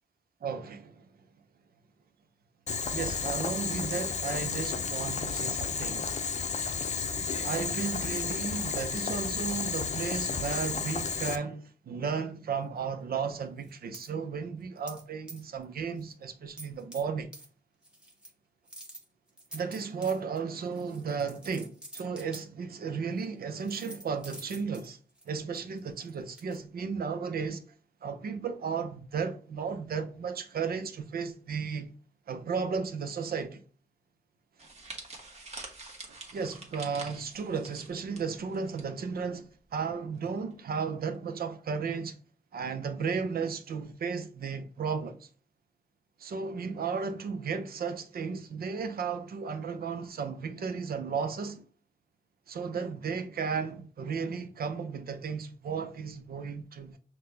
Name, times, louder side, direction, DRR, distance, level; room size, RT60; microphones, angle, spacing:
voice 1, 0.4-1.1 2.9-6.1 7.4-17.3 19.5-25.0 25.3-27.6 28.0-31.9 32.3-33.6 36.1-39.4 39.7-42.2 42.5-45.3 46.2-51.6 52.5-57.0, right 5 dB, 80° right, 0.7 m, -34 dB
Boiling, 2.7-11.4, left 5 dB, 50° left, 0.5 m, -32 dB
sound 1, 13.6-14.1 14.9-15.0 15.3-15.6 16.0-16.1 16.6-17.0 17.3-17.5 17.8-18.3 18.7-22.4 23.2-23.3 23.6-26.6, right 1 dB, 5° right, 1.3 m, -48 dB
sound 2, 34.6-38.8 39.1-39.4 40.2-40.5, right 3 dB, 45° right, 1.2 m, -46 dB
5.8 x 2.3 x 3.3 m
cardioid pair, 85°, 15 cm